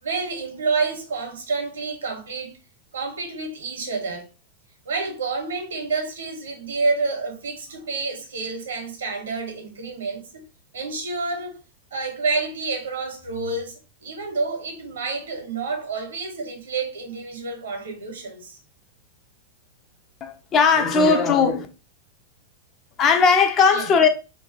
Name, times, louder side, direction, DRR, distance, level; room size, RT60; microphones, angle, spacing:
voice 1, 0.0-2.5 2.9-4.3 4.9-10.4 10.7-11.6 11.9-18.6 23.7-23.8, right 4 dB, 65° right, 0.9 m, -29 dB
voice 2, 20.2-21.7 23.0-24.1, left 5 dB, 30° left, 0.4 m, -18 dB
2.6 x 2.4 x 2.7 m
figure-of-eight pair, 90°, 0 cm